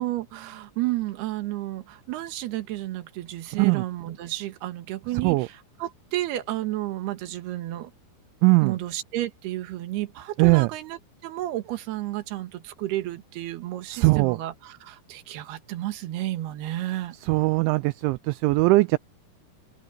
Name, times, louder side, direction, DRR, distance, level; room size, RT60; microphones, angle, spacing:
voice 1, 0.0-7.9 8.6-17.2, right 15 dB, 65° right, 3.2 m, -32 dB
voice 2, 8.4-8.8 10.4-10.7 13.9-14.4 17.2-19.0, right 23 dB, 85° right, 2.9 m, -20 dB
open air
omnidirectional pair, 5.5 m